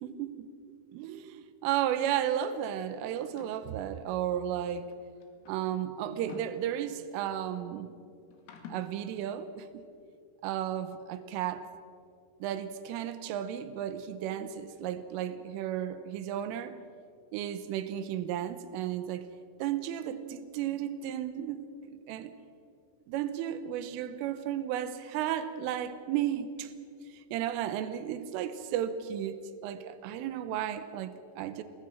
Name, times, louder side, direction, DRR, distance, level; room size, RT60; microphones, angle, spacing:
voice 1, 0.0-4.9 5.5-7.9 8.7-9.9 10.4-11.7 12.4-16.8 17.3-19.3 19.6-22.3 23.1-26.7 27.1-31.6, right 10 dB, 90° right, 11 dB, 3.5 m, -34 dB
sound 1, 3.2-3.7 4.8-7.2 8.3-9.0, left 5 dB, 85° left, 4.9 m, -50 dB
28.5 x 20.0 x 6.1 m, 2.4 s
omnidirectional pair, 5.7 m